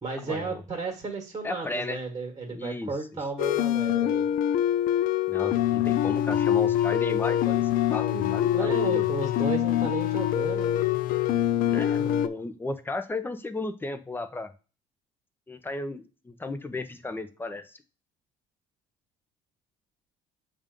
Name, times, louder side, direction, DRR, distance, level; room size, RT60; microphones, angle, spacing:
voice 1, 0.0-4.3 8.5-10.8, right 4 dB, 25° right, 2 dB, 1.5 m, -34 dB
voice 2, 1.4-2.0 2.5-2.9 5.3-9.1 11.7-14.5 15.5-17.8, left 2 dB, 15° left, 9 dB, 0.7 m, -34 dB
sound 1, 3.4-12.3, left 11 dB, 65° left, 0.5 m, -25 dB
7.1 x 2.6 x 5.2 m, 0.34 s
cardioid pair, 105°, 15 cm